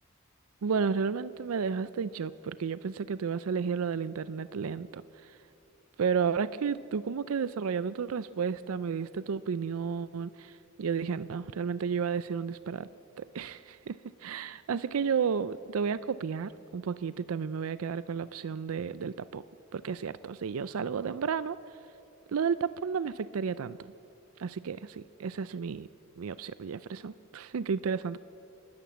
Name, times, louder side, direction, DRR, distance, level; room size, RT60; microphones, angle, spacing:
voice 1, 0.6-5.3 6.0-12.9 13.2-19.4 19.7-21.6 22.3-23.9 24.4-25.9 26.2-28.2, right 6 dB, 80° right, 16 dB, 0.4 m, -32 dB
28.5 x 12.5 x 7.3 m, 2.8 s
head